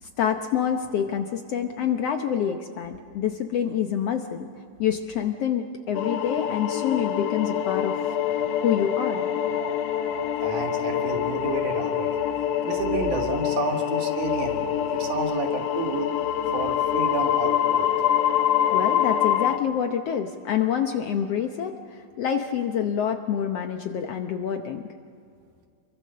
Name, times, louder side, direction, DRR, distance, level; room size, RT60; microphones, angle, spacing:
voice 1, 0.0-4.5 4.8-8.2 8.6-9.2 18.7-24.9, left 8 dB, 65° left, 5 dB, 1.6 m, -27 dB
sound 1, 5.9-19.6, left 10 dB, 85° left, 2.5 m, -25 dB
voice 2, 10.4-12.2 12.6-16.1 16.5-17.9, right 4 dB, 70° right, 4 dB, 3.2 m, -30 dB
27.5 x 23.0 x 6.5 m, 2.3 s
omnidirectional pair, 3.7 m